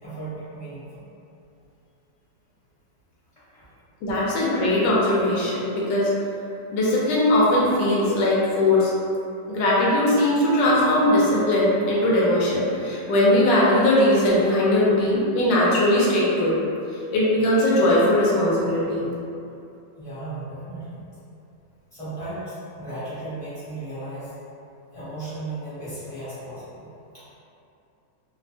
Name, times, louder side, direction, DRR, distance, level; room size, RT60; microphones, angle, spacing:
voice 1, 0.0-1.1 3.5-3.6 4.4-4.5 20.0-21.0 21.9-24.4 24.9-26.9 27.1-27.3, right 2 dB, 25° left, -15 dB, 0.8 m, -35 dB
voice 2, 4.0-6.1 6.7-8.9 9.5-16.6 16.9-19.1, left 1 dB, 75° left, -6 dB, 1.2 m, -20 dB
3.1 x 2.1 x 2.6 m, 2.7 s
omnidirectional pair, 2.0 m